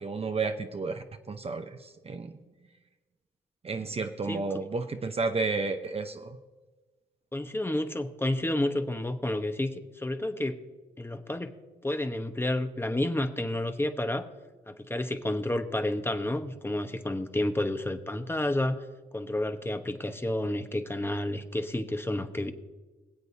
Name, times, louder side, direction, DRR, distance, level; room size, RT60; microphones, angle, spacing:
voice 1, 0.0-2.4 3.6-6.4, right 4 dB, 35° right, 7 dB, 0.8 m, -32 dB
voice 2, 7.3-10.6 11.0-11.5 11.8-14.2 14.7-18.8 19.1-22.5, left 1 dB, 10° left, 7 dB, 1.0 m, -30 dB
23.0 x 8.0 x 2.7 m, 1.3 s
supercardioid pair, 55°, 19 cm